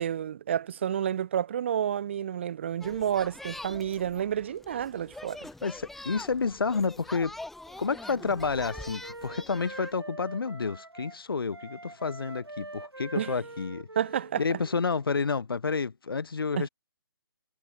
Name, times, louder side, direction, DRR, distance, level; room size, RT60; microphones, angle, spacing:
voice 1, 0.0-5.5 13.2-13.3 14.0-14.6 16.6-16.7, right 9 dB, 30° right, 0.4 m, -30 dB
sound 1, 2.8-9.9, left 2 dB, ahead, 1.2 m, -44 dB
voice 2, 5.6-7.4 7.8-13.9 14.4-16.7, left 5 dB, 65° left, 0.9 m, -30 dB
Wind instrument woodwind instrument, 7.6-11.2 11.5-15.3, right 2 dB, 90° right, 2.1 m, -45 dB
figure-of-eight pair, 145°, 13 cm